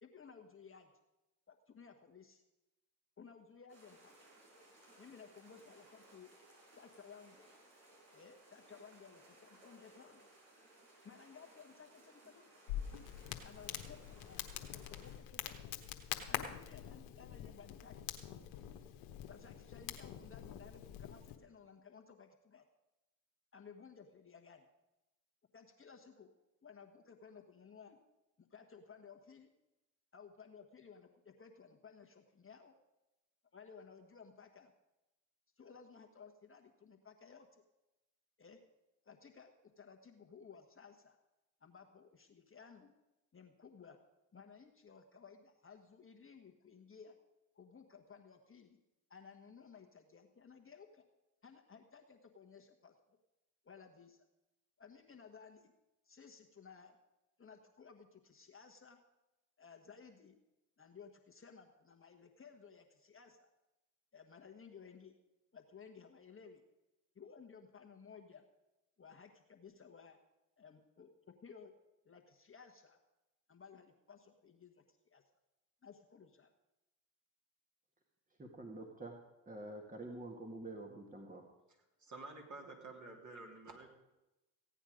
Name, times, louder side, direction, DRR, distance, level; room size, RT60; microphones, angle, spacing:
voice 1, 0.0-0.9 1.5-2.4 3.2-4.1 5.0-6.3 6.7-7.5 8.1-10.2 11.0-12.5 13.4-15.7 16.3-18.0 19.3-22.6 23.5-24.7 25.5-26.3 26.6-28.0 28.4-29.5 30.1-32.7 33.5-34.7 35.6-37.6 38.4-38.6 39.0-41.2 41.6-42.9 43.3-44.0 44.3-47.2 47.5-48.8 49.1-51.0 51.4-53.2 53.6-54.2 54.8-55.7 56.0-57.0 57.4-59.0 59.6-60.4 60.8-63.5 64.1-65.2 65.5-66.6 67.1-68.4 69.0-70.2 70.6-71.7 72.0-73.0 73.5-75.2 75.8-76.5, left 6 dB, 25° left, 3 dB, 1.4 m, -57 dB
sound 1, 3.7-15.2, right 1 dB, 75° right, 5.0 m, -63 dB
Crackle, 12.7-21.4, left 11 dB, 75° left, 1.2 m, -45 dB
voice 2, 78.4-79.1 79.5-81.4, right 2 dB, 15° right, 2 dB, 1.9 m, -47 dB
voice 3, 82.0-83.9, right 3 dB, 40° right, 0 dB, 3.2 m, -50 dB
16.0 x 9.0 x 5.1 m, 0.98 s
hypercardioid pair, 60°, 46 cm